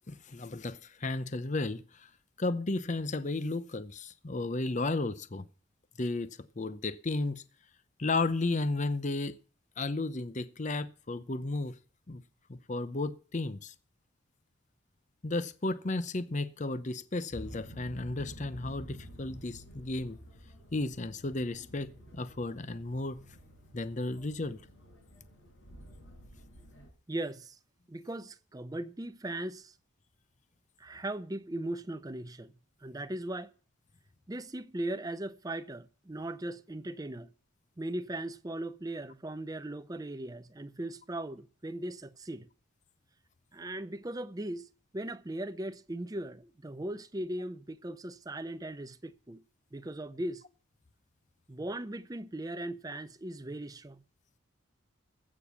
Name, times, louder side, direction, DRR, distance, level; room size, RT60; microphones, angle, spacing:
voice 1, 0.1-2.1 2.4-5.5 6.0-6.3 6.6-7.4 8.0-9.4 9.8-11.7 12.1-12.2 12.5-13.7 15.2-20.2 20.7-23.2 23.7-24.6, left 2 dB, 35° left, 0.7 m, -33 dB
sound 1, 17.3-26.9, equal, 70° left, 4.6 m, -50 dB
voice 2, 27.1-27.6 27.9-29.7 30.8-32.5 32.8-33.5 34.3-37.3 37.8-42.5 43.5-44.7 44.9-49.4 49.7-50.4 51.5-54.0, right 1 dB, 20° right, 0.6 m, -38 dB
15.0 x 6.7 x 7.0 m
head